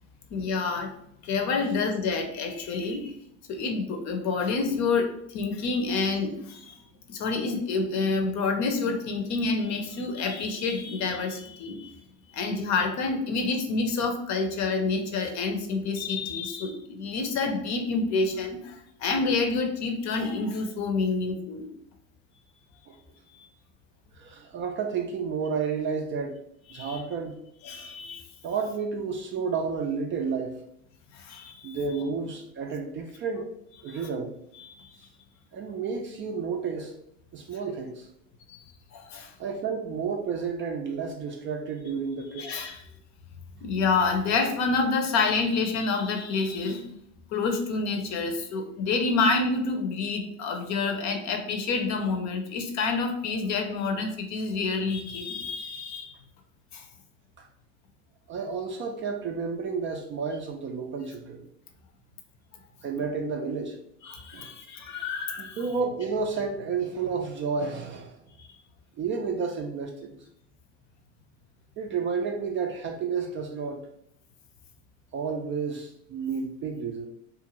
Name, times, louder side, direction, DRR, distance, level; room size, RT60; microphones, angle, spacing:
voice 1, 0.3-0.9 1.2-3.1 3.5-6.8 7.1-11.9 12.3-21.7 23.3-23.5 26.7-27.0 27.6-28.2 31.1-31.8 33.9-34.1 34.6-34.9 38.5-38.6 38.9-39.3 42.3-42.8 43.6-47.0 47.3-56.1 56.7-56.9 64.0-65.6 68.4-68.5, left 4 dB, 45° left, 5 dB, 0.7 m, -28 dB
voice 2, 24.2-26.4 26.7-27.3 28.4-30.5 31.6-33.5 33.8-34.3 35.5-36.9 37.3-38.1 39.4-42.5 57.4-57.5 58.3-61.5 62.8-63.8 64.3-64.5 65.4-68.2 69.0-70.2 71.8-73.9 75.1-77.1, right 5 dB, 30° right, 3 dB, 0.4 m, -31 dB
2.5 x 2.4 x 3.0 m, 0.73 s
hypercardioid pair, 85°, 39 cm